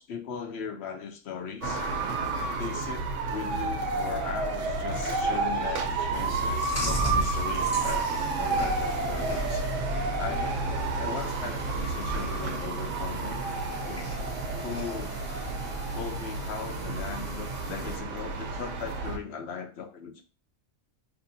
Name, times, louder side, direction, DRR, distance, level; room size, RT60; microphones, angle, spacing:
voice 1, 0.0-1.8 2.6-9.6 10.2-13.4 13.9-14.1 14.6-15.2 15.9-20.2, left 6 dB, 65° left, 6 dB, 0.7 m, -38 dB
sound 1, 1.6-19.2, right 3 dB, 65° right, 1.1 m, -30 dB
Chewing mastication, 6.1-18.0, right 2 dB, 10° left, 1.2 m, -38 dB
5.5 x 2.8 x 2.7 m, 0.35 s
omnidirectional pair, 1.4 m